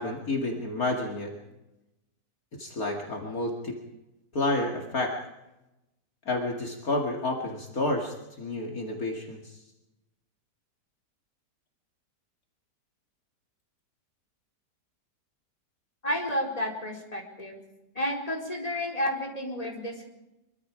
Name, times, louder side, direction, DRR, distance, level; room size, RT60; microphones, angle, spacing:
voice 1, 0.0-1.3 2.5-3.8 4.3-5.2 6.3-9.6, left 2 dB, 55° left, 0 dB, 2.6 m, -30 dB
voice 2, 16.0-17.6 17.9-20.1, equal, 20° left, -1 dB, 4.5 m, -31 dB
25.0 x 24.0 x 5.0 m, 0.97 s
omnidirectional pair, 1.8 m